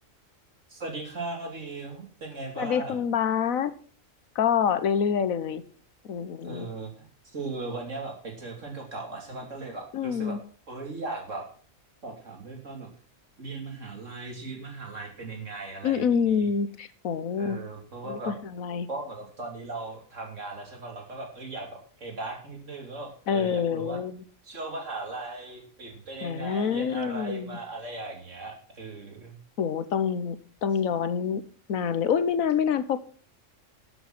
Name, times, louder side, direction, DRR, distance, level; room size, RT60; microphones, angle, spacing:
voice 1, 0.7-3.0 6.4-10.4 10.7-11.4 12.0-12.9 13.4-16.5 17.3-18.3 18.9-24.0 24.4-29.4, right 3 dB, 65° right, 2 dB, 3.3 m, -38 dB
voice 2, 2.6-3.7 4.3-5.6 6.0-6.7 9.9-10.4 15.8-17.6 18.1-18.9 23.3-24.2 26.2-27.5 29.6-30.4 30.6-31.4 31.7-33.0, left 7 dB, 85° left, 14 dB, 1.4 m, -26 dB
13.0 x 7.8 x 6.0 m, 0.43 s
omnidirectional pair, 1.4 m